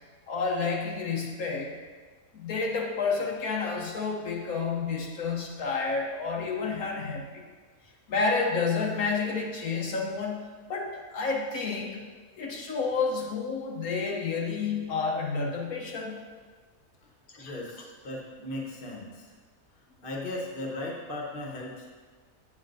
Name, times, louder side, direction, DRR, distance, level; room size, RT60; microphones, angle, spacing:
voice 1, 0.3-1.8 2.3-7.4 8.1-10.4 10.7-12.0 12.4-16.2 17.3-17.5, left 4 dB, 75° left, -1 dB, 1.2 m, -30 dB
voice 2, 17.4-19.3 19.7-21.9, left 1 dB, 40° left, -2 dB, 1.3 m, -37 dB
8.6 x 7.3 x 2.6 m, 1.5 s
omnidirectional pair, 1.5 m